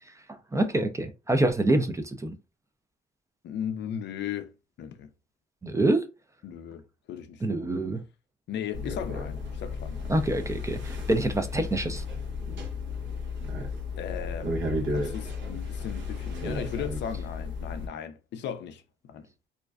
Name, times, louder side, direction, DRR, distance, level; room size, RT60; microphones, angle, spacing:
voice 1, 0.5-2.3 5.6-6.1 7.4-8.0 10.1-12.0, right 1 dB, 15° right, 0.4 m, -26 dB
voice 2, 3.4-4.5 4.8-5.1 6.4-6.8 7.1-7.7 8.5-10.1 14.0-19.3, left 8 dB, 65° left, 0.4 m, -37 dB
sound 1, 8.7-17.9, left 3 dB, 70° right, 0.8 m, -33 dB
2.5 x 2.1 x 2.3 m
cardioid pair, 90°, 20 cm